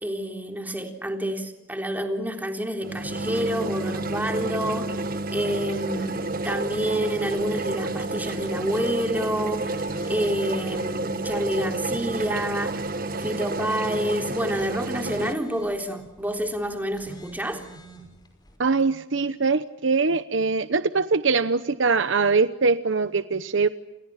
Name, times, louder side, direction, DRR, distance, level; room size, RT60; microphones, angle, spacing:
voice 1, 0.0-5.0 5.3-9.8 10.1-12.8 13.2-17.6, equal, 10° right, 3 dB, 3.7 m, -28 dB
sound 1, 2.8-15.3, right 2 dB, 50° right, 1.4 m, -30 dB
sound 2, 5.8-18.6, right 1 dB, 20° left, 5.7 m, -48 dB
voice 2, 18.6-23.7, right 4 dB, 90° right, 12 dB, 0.9 m, -22 dB
29.5 x 29.0 x 5.8 m, 0.99 s
head